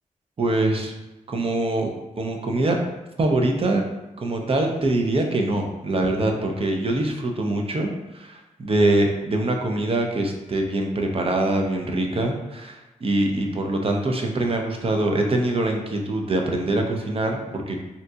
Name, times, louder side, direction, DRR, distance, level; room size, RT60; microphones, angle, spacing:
voice 1, 0.4-0.9 1.3-2.8 3.2-3.8 4.2-17.8, right 2 dB, 40° right, 2 dB, 0.6 m, -24 dB
3.7 x 2.8 x 2.3 m, 1.0 s
cardioid pair, 55°, 14 cm